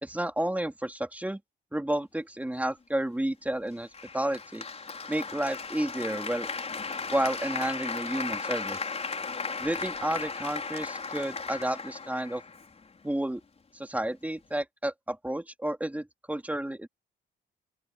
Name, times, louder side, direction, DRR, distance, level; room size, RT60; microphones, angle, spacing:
voice 1, 0.0-1.4 1.7-3.9 4.1-4.6 5.1-6.5 7.1-8.8 9.6-12.4 13.0-13.4 13.7-16.9, right 1 dB, 5° right, 3.3 m, -31 dB
Applause, 3.9-13.0, left 4 dB, 30° left, 5.2 m, -36 dB
open air
cardioid pair, 90°, 20 cm